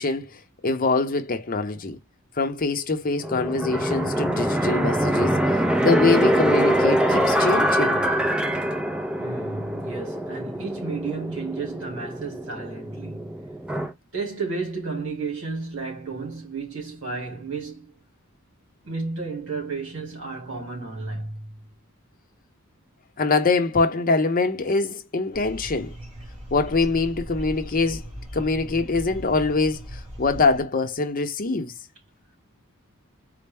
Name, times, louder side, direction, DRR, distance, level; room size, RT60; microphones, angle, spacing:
voice 1, 0.0-2.0 2.4-5.4 5.8-8.0 23.2-25.9 26.5-28.0 28.3-31.7, left 3 dB, 40° left, 0.6 m, -24 dB
sound 1, 3.2-13.9, equal, 5° right, 0.4 m, -24 dB
voice 2, 9.2-13.5 14.1-17.9 18.8-21.6, right 4 dB, 55° right, 2.1 m, -32 dB
sound 2, 25.3-30.6, equal, 25° right, 1.9 m, -38 dB
4.2 x 2.1 x 3.3 m
head